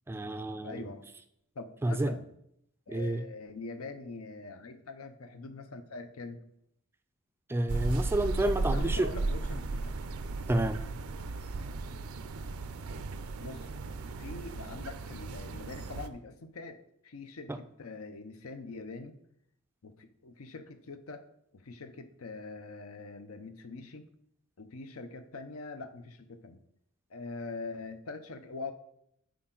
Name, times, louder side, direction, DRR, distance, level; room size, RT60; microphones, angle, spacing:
voice 1, 0.1-0.9 1.8-2.1 2.9-3.2 7.5-9.1 10.5-10.8 17.5-17.6, right 1 dB, 10° right, 9 dB, 0.3 m, -29 dB
voice 2, 0.6-1.1 1.6-2.3 2.9-6.4 8.5-10.0 13.4-13.7 14.2-19.2 19.8-21.2 21.5-24.0 24.6-26.6 27.1-28.7, left 3 dB, 85° left, 9 dB, 0.7 m, -43 dB
sound 1, 7.7-16.1, right 3 dB, 80° right, 0.5 m, -35 dB
8.5 x 4.7 x 3.8 m, 0.76 s
head